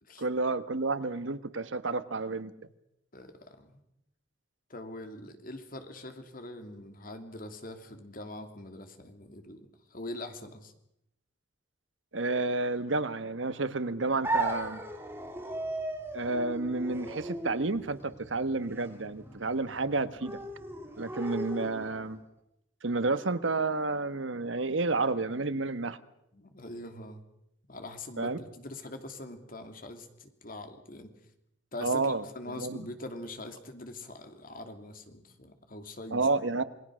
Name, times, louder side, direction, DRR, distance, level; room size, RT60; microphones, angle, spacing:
voice 1, 0.2-2.5 12.1-14.8 16.1-20.4 21.0-22.2 22.8-26.0 28.2-28.4 31.8-32.2 32.6-32.8 36.1-36.6, right 3 dB, 85° right, 12 dB, 1.3 m, -30 dB
voice 2, 3.1-3.8 4.7-10.7 26.3-27.2 27.7-31.1 31.7-36.3, left 2 dB, 45° left, 7 dB, 2.8 m, -43 dB
sound 1, 14.2-22.2, right 2 dB, 10° right, 3.2 m, -37 dB
28.0 x 20.5 x 6.4 m, 0.80 s
head